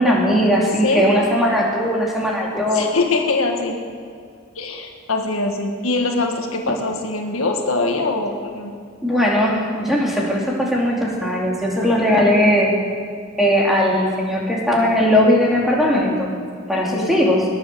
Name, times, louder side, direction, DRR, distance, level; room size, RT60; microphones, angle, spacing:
voice 1, 0.0-2.9 9.0-12.7 13.4-16.3 16.7-17.4, equal, ahead, -3 dB, 2.6 m, -18 dB
voice 2, 2.7-3.8 4.6-8.7 16.9-17.2, left 3 dB, 75° left, 3 dB, 1.8 m, -23 dB
20.0 x 8.5 x 6.8 m, 2.3 s
head